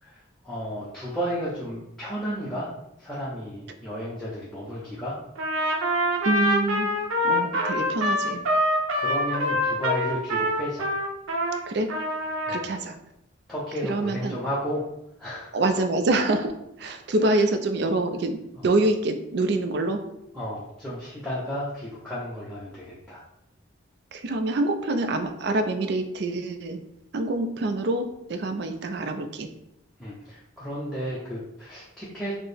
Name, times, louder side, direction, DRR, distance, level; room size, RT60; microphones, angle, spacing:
voice 1, 0.0-2.7 3.0-5.2 9.0-10.9 12.5-12.6 13.5-14.8 15.2-15.6 17.2-17.4 18.5-18.7 20.3-23.2 30.0-32.4, equal, ahead, -9 dB, 0.6 m, -33 dB
Trumpet, 5.4-11.6 11.9-12.7, equal, 90° right, 0.7 m, -25 dB
voice 2, 6.2-6.9 7.2-8.4 11.7-11.9 12.5-13.0 13.9-14.4 15.5-16.5 16.8-20.0 24.1-26.8 27.1-29.5, right 2 dB, 55° right, 7 dB, 0.4 m, -26 dB
4.3 x 2.0 x 3.3 m, 0.81 s
head